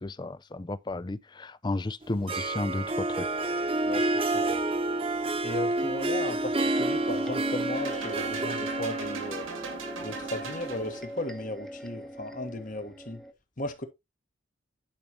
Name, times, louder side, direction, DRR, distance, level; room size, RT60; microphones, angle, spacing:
voice 1, 0.0-3.3 3.6-3.7, left 2 dB, 20° left, 0.4 m, -33 dB
Harp, 2.0-11.0, right 2 dB, 30° right, 1.0 m, -30 dB
sound 1, 3.0-13.3, equal, ahead, 0.9 m, -43 dB
voice 2, 3.8-4.6 5.4-9.5 10.0-13.2 13.6-13.8, left 1 dB, 40° left, 1.4 m, -36 dB
sound 2, 7.7-11.2, right 4 dB, 90° right, 2.2 m, -39 dB
10.5 x 5.2 x 3.0 m
head